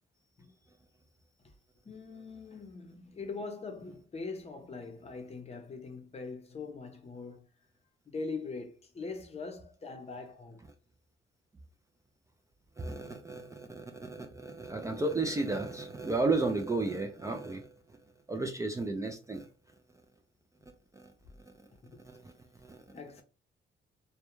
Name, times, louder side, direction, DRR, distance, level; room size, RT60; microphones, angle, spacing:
voice 1, 1.9-7.4 8.1-10.6 21.8-22.0 22.9-23.2, left 4 dB, 30° left, 0.7 m, -42 dB
voice 2, 12.8-18.0 18.3-19.5 20.9-21.1 22.0-22.8, right 3 dB, 15° right, 0.3 m, -33 dB
2.2 x 2.1 x 3.0 m
cardioid pair, 90°, 20 cm